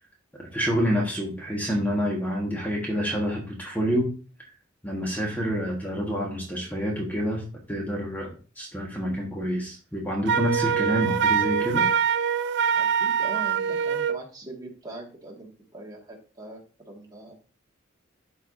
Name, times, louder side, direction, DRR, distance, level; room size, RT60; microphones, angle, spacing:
voice 1, 0.5-4.1 4.8-7.4 7.7-8.3 8.6-11.9, equal, 10° left, -1 dB, 1.3 m, -27 dB
Wind instrument woodwind instrument, 10.3-14.2, right 7 dB, 55° right, 0.4 m, -24 dB
voice 2, 12.7-16.6 16.9-17.3, right 2 dB, 20° right, -2 dB, 1.7 m, -41 dB
12.5 x 4.6 x 2.6 m, 0.36 s
head